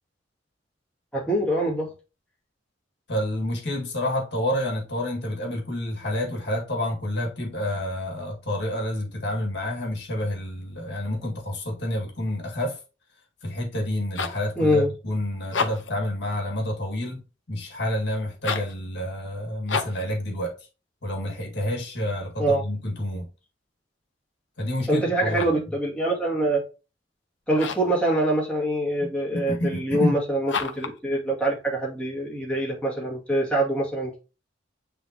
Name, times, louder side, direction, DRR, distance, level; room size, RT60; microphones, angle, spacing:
voice 1, 1.1-1.9 14.6-14.9 22.4-22.6 24.9-26.6 27.5-34.2, right 1 dB, 5° left, 2.2 m, -24 dB
voice 2, 3.1-12.8 13.4-17.2 17.5-20.6 21.0-23.3 24.6-25.5 29.0-30.2, left 1 dB, 65° left, 2.0 m, -29 dB
sound 1, 13.8-14.5 15.4-16.0 18.3-18.8 19.7-20.1 25.1-25.7 27.5-28.0 30.5-31.0, left 5 dB, 80° left, 0.9 m, -30 dB
9.4 x 3.5 x 2.9 m
head